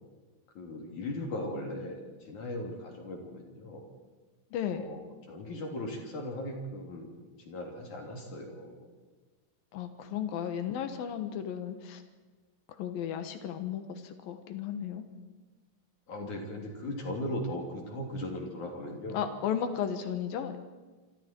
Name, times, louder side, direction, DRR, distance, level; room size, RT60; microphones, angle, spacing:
voice 1, 0.6-3.9 4.7-5.0 5.3-8.9 16.1-19.3, left 1 dB, 60° left, 1 dB, 4.5 m, -38 dB
voice 2, 4.5-4.9 9.7-12.0 12.8-15.0 19.1-20.6, left 9 dB, 90° left, 8 dB, 3.1 m, -34 dB
27.0 x 26.0 x 4.6 m, 1.3 s
omnidirectional pair, 4.0 m